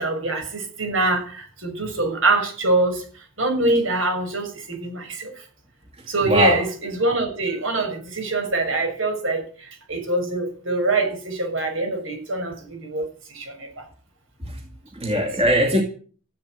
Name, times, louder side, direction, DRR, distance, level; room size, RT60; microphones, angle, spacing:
voice 1, 0.0-5.4 6.1-13.8 15.1-15.3, right 2 dB, 70° right, 6.7 m, -24 dB
voice 2, 6.2-6.6 14.4-14.6 14.9-15.8, equal, 30° right, 2.3 m, -20 dB
15.0 x 8.4 x 9.5 m
head